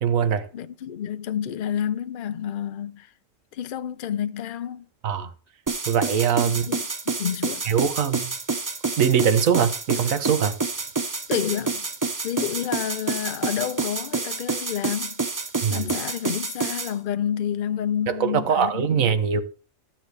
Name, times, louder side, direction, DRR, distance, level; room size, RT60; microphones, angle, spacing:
voice 1, 0.0-0.5 5.0-5.3 5.9-6.7 7.7-8.4 9.0-10.6 15.6-15.9 18.1-19.4, right 7 dB, 80° right, 1.4 m, -22 dB
voice 2, 0.5-3.1 3.5-4.9 6.4-6.9 7.2-7.6 11.3-11.9 12.2-15.2 15.7-19.2, left 9 dB, 50° left, 0.7 m, -29 dB
sound 1, 5.7-16.9, right 3 dB, 30° right, 0.3 m, -28 dB
12.0 x 7.4 x 3.3 m
omnidirectional pair, 1.4 m